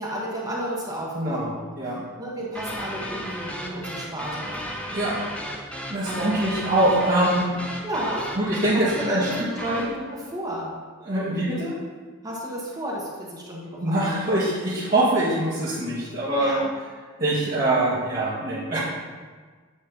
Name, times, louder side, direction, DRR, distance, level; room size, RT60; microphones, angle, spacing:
voice 1, 0.0-1.7 2.2-5.2 6.0-6.3 7.8-8.4 8.7-10.7 12.2-14.2 16.4-16.7, equal, 15° right, -5 dB, 1.3 m, -33 dB
voice 2, 1.1-1.5 1.8-2.0 4.9-5.2 5.9-7.7 8.4-9.8 11.0-11.7 13.8-16.6 17.2-18.8, right 1 dB, 45° right, -12 dB, 1.8 m, -23 dB
sound 1, 2.5-10.0, equal, 5° left, 0.5 m, -34 dB
9.4 x 3.2 x 5.3 m, 1.5 s
head